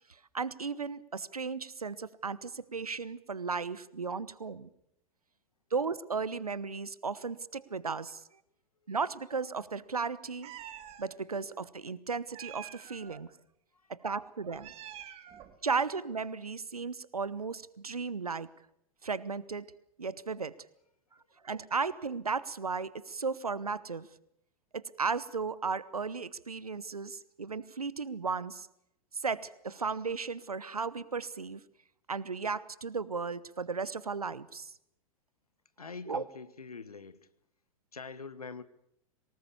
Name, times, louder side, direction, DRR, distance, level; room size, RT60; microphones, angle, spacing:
voice 1, 0.3-4.7 5.7-8.2 8.9-10.5 11.0-13.3 13.9-14.7 15.6-18.5 19.0-19.7 20.0-20.5 21.4-24.1 24.7-28.7 29.1-31.6 32.1-34.7 36.1-36.2, right 5 dB, 85° right, 18 dB, 1.1 m, -35 dB
Meow, 10.4-11.1 12.3-13.2 14.4-15.6, right 11 dB, 35° right, 2.2 m, -47 dB
voice 2, 35.8-37.2 37.9-38.6, left 4 dB, 85° left, 15 dB, 1.5 m, -44 dB
23.5 x 19.0 x 7.1 m, 0.77 s
figure-of-eight pair, 100°, 18 cm